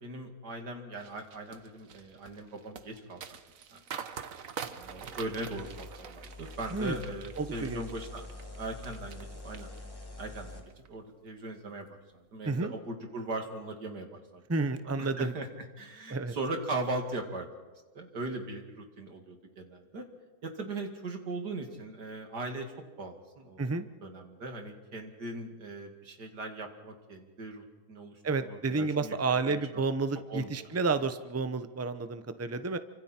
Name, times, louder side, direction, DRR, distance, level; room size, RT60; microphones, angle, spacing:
voice 1, 0.0-3.4 3.7-3.8 4.7-8.2 8.6-9.7 10.2-11.9 12.1-14.4 14.8-15.5 15.8-17.5 17.9-20.1 20.4-23.7 24.0-29.8 30.3-30.6, right 2 dB, 75° right, 3 dB, 3.0 m, -39 dB
sound 1, 1.0-9.2 9.5-10.2 10.6-10.9, right 7 dB, 55° right, 1.3 m, -45 dB
sound 2, 4.8-10.6, left 2 dB, 15° left, 2.5 m, -46 dB
voice 2, 7.4-7.8 12.5-12.7 14.5-15.3 16.1-16.3 23.6-23.9 28.2-32.8, right 3 dB, 20° right, 10 dB, 0.4 m, -30 dB
28.5 x 25.5 x 4.4 m, 1.2 s
omnidirectional pair, 1.8 m